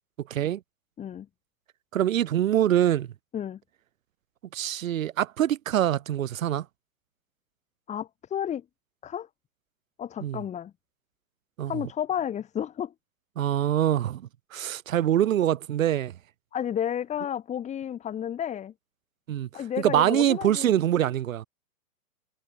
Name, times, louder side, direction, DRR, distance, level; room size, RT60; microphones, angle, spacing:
voice 1, 1.9-3.1 4.5-6.6 10.2-10.4 11.6-11.7 13.4-14.2 14.5-16.1 19.3-19.5 19.8-21.4, right 11 dB, 60° right, 1.6 m, -24 dB
voice 2, 7.9-8.6 9.0-9.3 10.0-10.7 11.7-12.9 16.5-18.7 19.5-20.7, left 9 dB, 15° left, 8.0 m, -32 dB
hypercardioid pair, 155°, 46 cm